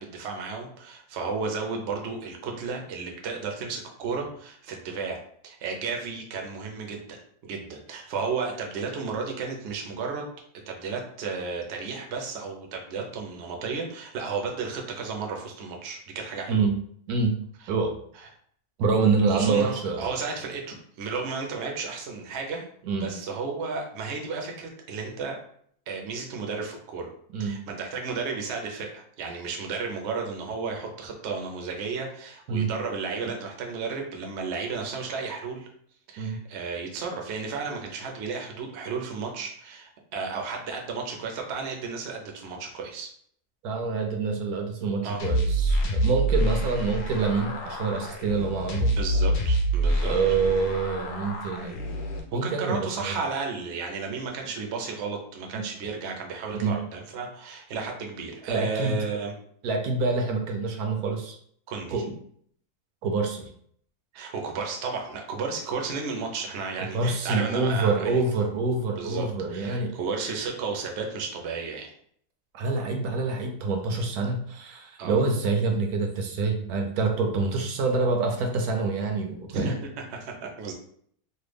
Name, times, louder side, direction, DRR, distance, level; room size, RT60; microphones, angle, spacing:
voice 1, 0.0-5.2 5.4-10.3 10.7-16.6 19.3-22.6 22.9-25.4 25.9-27.1 27.4-35.7 36.1-43.1 45.0-45.3 48.9-50.1 52.3-59.3 61.7-62.0 64.1-68.3 69.0-71.9 75.0-75.2 79.5-80.7, right 4 dB, 60° right, 1 dB, 0.8 m, -33 dB
voice 2, 18.8-20.1 22.8-23.1 27.3-27.6 32.5-32.7 36.2-36.4 43.6-49.0 50.0-51.8 52.3-53.2 55.5-55.6 56.6-56.7 58.5-59.0 59.6-61.4 61.9-62.1 63.0-63.5 66.8-70.0 72.5-79.7, right 4 dB, 80° right, 3 dB, 1.1 m, -26 dB
sound 1, 45.2-52.2, right 1 dB, 60° left, 0.8 m, -26 dB
3.1 x 2.2 x 3.3 m, 0.63 s
omnidirectional pair, 1.6 m